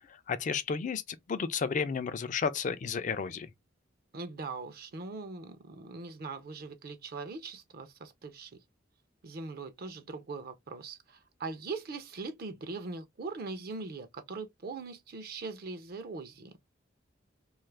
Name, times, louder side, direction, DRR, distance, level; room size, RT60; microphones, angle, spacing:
voice 1, 0.1-3.5, left 5 dB, 40° left, 0.4 m, -32 dB
voice 2, 4.1-8.5 9.2-16.5, right 3 dB, 55° right, 0.5 m, -41 dB
2.7 x 2.4 x 3.1 m
head